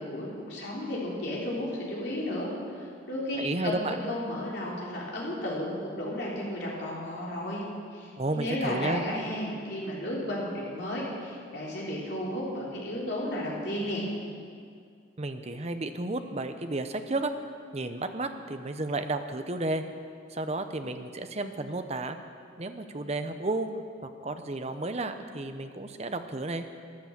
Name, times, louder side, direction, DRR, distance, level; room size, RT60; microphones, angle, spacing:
voice 1, 0.0-7.6 7.9-14.1, left 1 dB, 60° left, -5 dB, 3.8 m, -33 dB
voice 2, 3.4-4.0 8.2-9.0 15.2-17.3 17.7-19.8 20.3-22.2 22.6-23.7 24.0-26.6, right 2 dB, 35° right, 8 dB, 0.7 m, -32 dB
13.5 x 11.0 x 7.3 m, 2.3 s
head